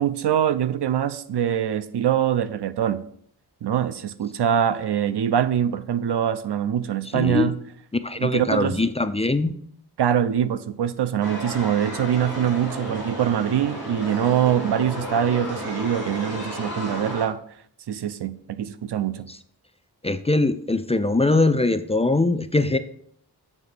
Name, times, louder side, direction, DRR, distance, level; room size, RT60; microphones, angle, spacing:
voice 1, 0.0-3.0 3.6-7.6 8.2-8.8 10.0-17.4 17.9-19.3, right 9 dB, 85° right, 0.6 m, -23 dB
voice 2, 7.1-7.5 8.0-9.5 19.3-19.4 20.0-22.8, left 2 dB, 15° left, 0.4 m, -22 dB
sound 1, 11.2-17.3, equal, 60° right, 3.0 m, -33 dB
7.5 x 3.8 x 6.6 m
wide cardioid pair, 100°, 39 cm